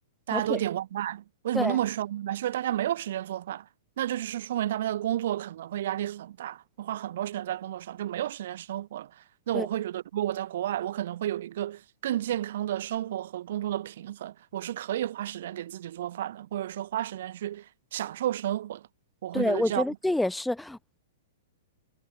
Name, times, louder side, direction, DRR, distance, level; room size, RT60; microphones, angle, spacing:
voice 1, 0.3-3.7 4.0-18.9 19.2-19.9, right 12 dB, 55° right, 3.6 m, -31 dB
voice 2, 19.3-20.8, left 1 dB, 5° left, 0.4 m, -27 dB
figure-of-eight pair, 110°, 0 cm